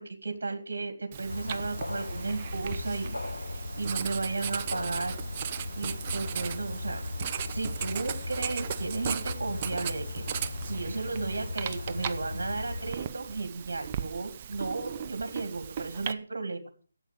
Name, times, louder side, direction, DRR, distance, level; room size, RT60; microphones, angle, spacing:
voice 1, 0.0-3.2 3.5-5.2 5.7-7.0 7.5-16.8, right 3 dB, 70° right, 7 dB, 2.3 m, -34 dB
Writing, 1.1-16.1, right 8 dB, 35° right, 0.8 m, -38 dB
sound 1, 1.3-12.9, left 2 dB, 90° left, 1.4 m, -37 dB
13.5 x 8.3 x 6.6 m, 0.41 s
figure-of-eight pair, 150°, 0 cm